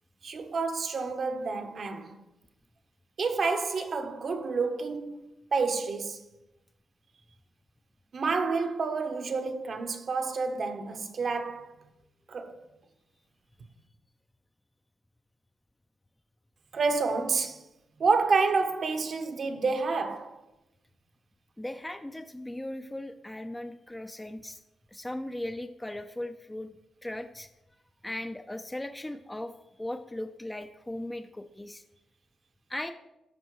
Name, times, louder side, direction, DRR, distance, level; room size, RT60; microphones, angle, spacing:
voice 1, 0.2-2.2 3.2-5.2 5.5-6.2 8.1-11.7 12.3-12.6 16.7-17.6 18.0-20.4, right 4 dB, 55° right, 0.9 m, -29 dB
voice 2, 21.6-24.6 24.9-26.7 27.0-27.5 28.0-29.5 29.8-31.8 32.7-32.9, left 1 dB, 15° left, 0.5 m, -38 dB
13.5 x 4.5 x 3.1 m
cardioid pair, 70°, 0 cm